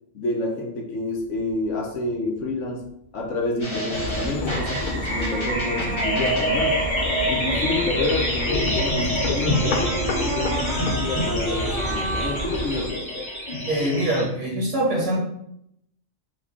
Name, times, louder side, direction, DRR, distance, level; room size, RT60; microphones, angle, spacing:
voice 1, 0.1-6.8 7.3-13.1, left 2 dB, 65° left, 0 dB, 1.1 m, -29 dB
sound 1, 1.2-1.7 2.8-2.9 5.1-9.0 9.4-14.2, right 3 dB, 50° right, 0.7 m, -35 dB
sound 2, 3.6-14.2, equal, 25° left, 1.0 m, -27 dB
sound 3, 3.9-12.9, left 1 dB, 85° left, 0.4 m, -30 dB
voice 2, 13.7-15.2, right 1 dB, 80° right, -5 dB, 1.9 m, -23 dB
4.7 x 2.4 x 3.6 m, 0.75 s
omnidirectional pair, 1.4 m